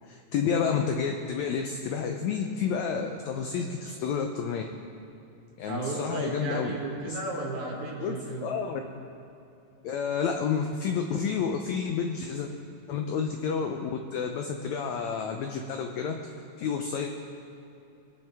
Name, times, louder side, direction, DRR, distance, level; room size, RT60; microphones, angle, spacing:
voice 1, 0.0-4.6 5.6-6.7 7.0-7.2 8.0-8.8 9.8-12.5 12.9-16.3 16.6-17.1, left 6 dB, 80° left, 4 dB, 1.6 m, -30 dB
voice 2, 5.7-8.5, right 2 dB, 60° right, -3 dB, 3.3 m, -34 dB
22.5 x 9.4 x 3.5 m, 2.7 s
omnidirectional pair, 4.0 m